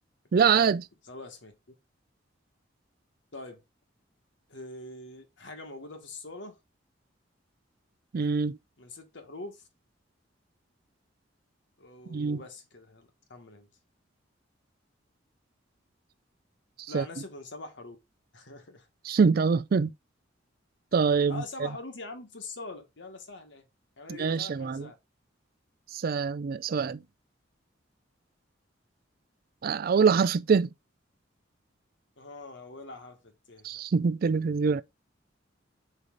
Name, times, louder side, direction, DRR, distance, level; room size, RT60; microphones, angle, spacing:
voice 1, 0.3-0.8 8.1-8.6 12.1-12.4 16.8-17.1 19.0-19.9 20.9-21.4 24.1-24.9 25.9-27.0 29.6-30.7 33.6-34.8, right 5 dB, 50° right, 0.4 m, -24 dB
voice 2, 1.1-1.5 3.3-3.6 4.5-6.6 8.8-9.6 11.8-13.7 16.9-18.0 18.3-18.9 21.3-23.7 24.0-24.9 32.2-33.7, left 3 dB, 70° left, 1.5 m, -43 dB
5.4 x 4.9 x 3.9 m
head